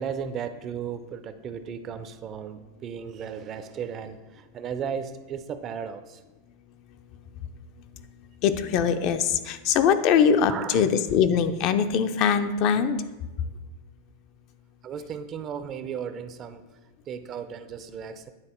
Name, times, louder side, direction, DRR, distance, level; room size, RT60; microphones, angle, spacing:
voice 1, 0.0-6.2 10.5-10.8 14.8-16.6 17.1-18.3, right 7 dB, 35° right, 11 dB, 0.5 m, -35 dB
voice 2, 8.4-13.0, left 7 dB, 50° left, 9 dB, 0.5 m, -22 dB
8.9 x 3.6 x 4.3 m, 1.1 s
hypercardioid pair, 125°, 0 cm